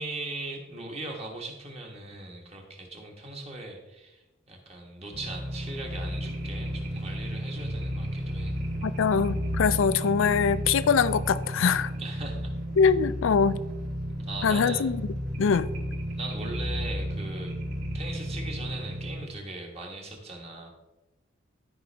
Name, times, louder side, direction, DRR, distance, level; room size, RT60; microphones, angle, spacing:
voice 1, 0.0-8.6 12.0-12.5 14.2-14.9 16.2-17.6 17.9-20.7, right 2 dB, 30° right, 1.5 m, -39 dB
sound 1, 5.1-19.2, equal, 75° right, 3.2 m, -33 dB
voice 2, 8.8-11.9 12.8-13.6 14.4-15.0 15.4-15.7, left 6 dB, 75° left, 0.4 m, -23 dB
13.0 x 5.1 x 3.4 m
head